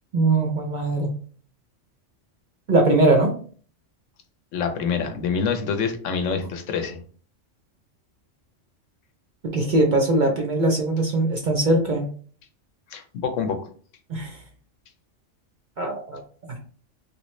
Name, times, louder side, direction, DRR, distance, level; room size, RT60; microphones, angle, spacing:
voice 1, 0.1-1.1 2.7-3.3 9.5-12.1 14.1-14.4 15.8-16.2 16.5-16.6, right 2 dB, 50° right, 2 dB, 0.6 m, -21 dB
voice 2, 4.5-7.0 12.9-13.6, left 6 dB, 75° left, 6 dB, 1.0 m, -26 dB
3.3 x 2.6 x 3.1 m, 0.43 s
omnidirectional pair, 1.3 m